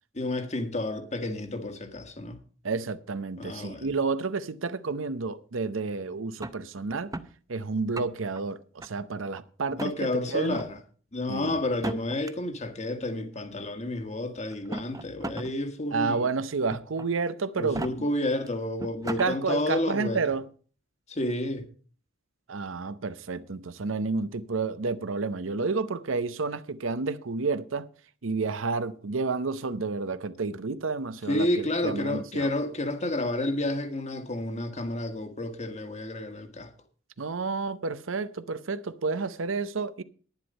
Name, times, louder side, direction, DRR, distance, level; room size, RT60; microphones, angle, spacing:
voice 1, 0.1-2.4 3.4-3.9 9.7-10.8 11.1-16.3 17.6-20.2 21.1-21.7 31.3-36.7, left 1 dB, 35° left, 1.6 m, -30 dB
voice 2, 2.6-7.1 7.5-10.6 11.3-11.6 15.9-17.9 19.2-20.5 22.5-27.9 28.2-32.5 37.2-40.0, right 4 dB, 85° right, 0.7 m, -30 dB
sound 1, 6.4-7.3 7.8-8.4 8.8-9.4 9.8-9.9 10.4-10.7 11.7-12.3 13.4-13.5 14.5-15.5 15.9-16.0 16.7-17.1 17.6-17.9 18.5-18.6 18.8-19.3, right 2 dB, 20° right, 0.7 m, -36 dB
10.5 x 9.9 x 5.3 m
head